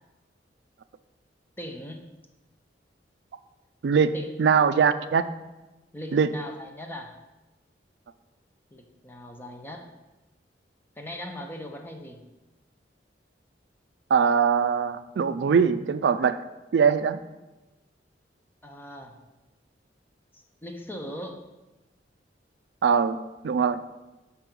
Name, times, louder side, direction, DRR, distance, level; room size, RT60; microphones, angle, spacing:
voice 1, 1.6-2.0 4.1-4.3 5.9-7.2 8.7-9.9 11.0-12.3 18.6-19.1 20.3-21.4, left 1 dB, 10° left, 3 dB, 0.7 m, -39 dB
voice 2, 3.8-4.1 4.4-5.2 6.1-6.3 14.1-16.4 16.7-17.2 22.8-23.8, right 6 dB, 70° right, 12 dB, 0.4 m, -22 dB
5.6 x 5.2 x 6.0 m, 1.1 s
head